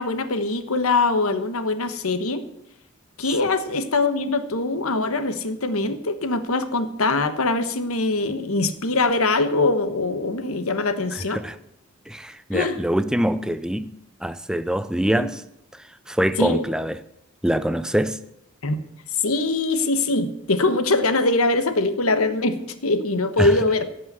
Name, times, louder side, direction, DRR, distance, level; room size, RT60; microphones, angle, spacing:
voice 1, 0.0-2.4 3.2-11.4 12.5-12.8 15.2-15.3 16.4-16.6 18.6-18.8 19.2-23.9, left 3 dB, 80° left, 1.2 m, -22 dB
voice 2, 12.1-13.9 14.2-15.4 15.7-17.0 17.4-18.2 23.4-23.5, right 1 dB, 5° right, 0.4 m, -24 dB
16.5 x 5.6 x 8.2 m
head